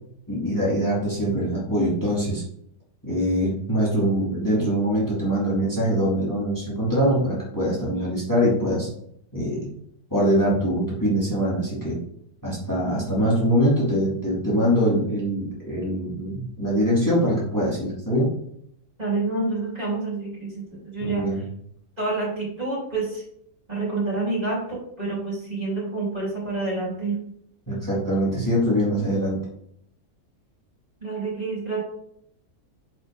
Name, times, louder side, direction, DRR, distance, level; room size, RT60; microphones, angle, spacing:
voice 1, 0.3-2.4 3.0-8.9 9.3-9.7 10.1-12.0 12.4-18.3 21.0-21.4 27.7-29.4, equal, 10° left, -6 dB, 2.8 m, -23 dB
voice 2, 19.0-21.3 22.0-23.2 23.7-27.2 31.0-31.8, right 3 dB, 25° right, -6 dB, 3.8 m, -28 dB
10.5 x 5.0 x 3.7 m, 0.71 s
omnidirectional pair, 1.6 m